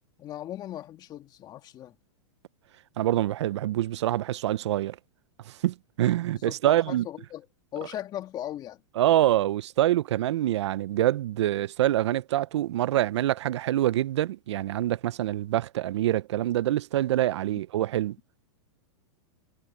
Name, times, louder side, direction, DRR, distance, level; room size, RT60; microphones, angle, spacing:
voice 1, 0.2-2.0 6.3-7.5 7.7-8.8, left 12 dB, 25° left, 2.1 m, -38 dB
voice 2, 3.0-5.0 5.5-7.0 9.0-18.2, right 13 dB, 70° right, 0.5 m, -25 dB
hypercardioid pair, 140°, 15 cm